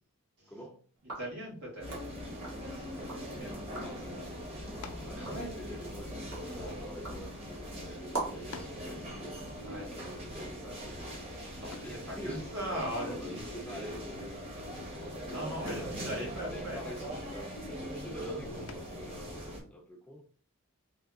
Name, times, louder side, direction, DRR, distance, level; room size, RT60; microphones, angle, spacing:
voice 1, 0.5-0.8 3.3-9.5 9.8-12.5 13.0-14.2 15.6-20.2, equal, 5° left, 2 dB, 0.4 m, -48 dB
sound 1, 1.0-3.3 3.6-4.1 4.6-8.6, right 3 dB, 65° right, 1.5 m, -44 dB
voice 2, 1.2-2.0 2.7-3.9 5.2-5.5 9.6-9.9 11.5-14.3 14.7-16.9, right 1 dB, 85° right, -3 dB, 1.9 m, -41 dB
sound 2, 1.8-19.6, equal, 25° right, 0.9 m, -41 dB
sound 3, 4.8-5.2 6.1-7.3 8.0-8.1 8.5-8.9 11.7-12.0 13.9-14.3 14.7-15.1 15.7-16.0 18.7-19.1, left 5 dB, 70° left, 0.4 m, -50 dB
3.3 x 2.7 x 3.5 m, 0.43 s
head